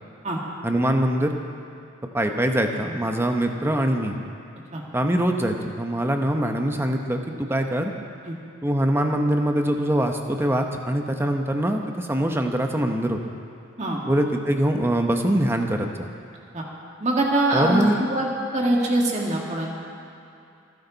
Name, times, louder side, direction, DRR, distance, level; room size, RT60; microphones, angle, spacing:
voice 1, 0.6-1.3 2.1-4.1 4.9-7.9 8.6-13.2 14.1-16.1 17.5-18.0, right 1 dB, 10° right, 4 dB, 0.9 m, -23 dB
voice 2, 17.0-18.3 18.5-19.9, right 1 dB, 35° right, -2 dB, 2.1 m, -23 dB
28.0 x 10.0 x 4.0 m, 2.6 s
head